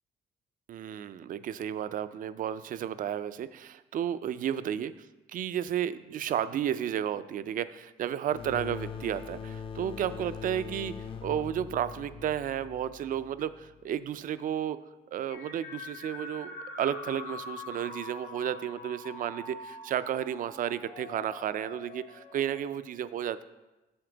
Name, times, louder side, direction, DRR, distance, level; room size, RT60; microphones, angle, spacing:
voice 1, 0.7-4.9 5.3-10.9 11.2-14.8 15.1-23.4, right 10 dB, 50° right, 14 dB, 0.4 m, -32 dB
sound 1, 8.3-13.7, left 6 dB, 30° left, 0.5 m, -42 dB
sound 2, 15.3-22.8, left 2 dB, 75° left, 2.0 m, -44 dB
7.9 x 6.9 x 3.9 m, 1.0 s
cardioid pair, 145°, 17 cm